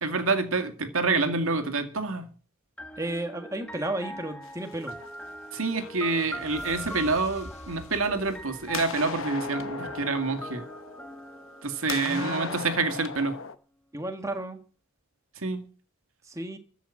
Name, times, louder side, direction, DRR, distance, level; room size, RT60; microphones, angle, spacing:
voice 1, 0.0-2.3 5.5-10.6 11.6-13.4 15.4-15.6, right 3 dB, 75° right, 7 dB, 2.1 m, -27 dB
sound 1, 2.8-12.6, equal, 5° left, 0.8 m, -41 dB
voice 2, 3.0-5.0 12.0-12.5 13.9-14.6 16.3-16.6, right 1 dB, 15° right, 5 dB, 1.5 m, -33 dB
sound 2, 4.4-5.3 5.7-7.3 7.9-8.4 8.6-11.6 11.9-13.5, left 5 dB, 65° left, 0.9 m, -38 dB
sound 3, 5.0-9.8, left 1 dB, 30° left, 1.8 m, -48 dB
14.0 x 6.2 x 8.7 m, 0.40 s
head